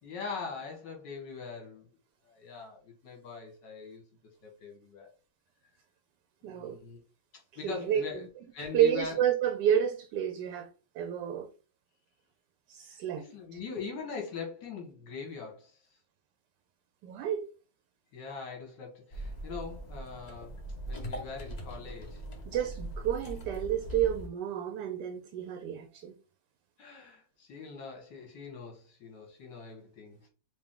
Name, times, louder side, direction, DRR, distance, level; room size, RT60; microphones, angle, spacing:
voice 1, 0.0-1.9 2.2-4.0 4.4-5.1 6.4-7.0 7.3-8.2 8.5-9.2 12.9-15.8 18.1-20.6 20.9-22.2 26.8-30.2, left 5 dB, 70° left, 1.9 m, -42 dB
voice 2, 6.4-6.8 7.6-8.0 8.7-10.7 10.9-11.5 12.7-13.2 17.0-17.5 22.5-26.2, right 10 dB, 75° right, 1.1 m, -30 dB
sound 1, 19.1-24.3, right 1 dB, 45° left, 0.5 m, -41 dB
5.1 x 2.5 x 3.6 m
omnidirectional pair, 2.0 m